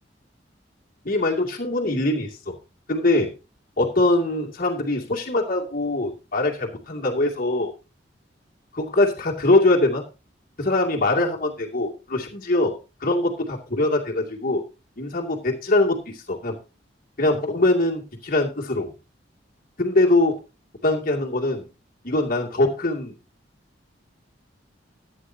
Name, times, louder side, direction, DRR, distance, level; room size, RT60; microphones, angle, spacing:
voice 1, 1.0-2.5 2.9-3.3 3.8-7.7 8.7-10.0 10.6-14.6 15.0-16.6 17.2-18.9 19.8-20.4 20.8-21.7 22.0-23.1, left 2 dB, 50° left, -1 dB, 2.5 m, -22 dB
13.5 x 9.6 x 2.8 m, 0.28 s
head